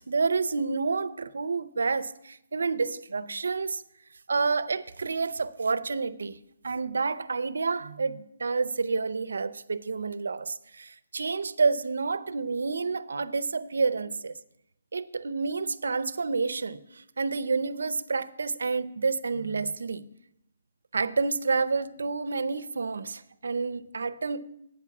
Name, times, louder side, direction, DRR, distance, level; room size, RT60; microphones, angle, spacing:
voice 1, 0.0-3.8 4.3-6.4 6.6-14.3 14.9-20.1 20.9-24.5, right 4 dB, 80° right, 0.5 m, -29 dB
8.7 x 5.9 x 7.1 m
hypercardioid pair, 180°, 0 cm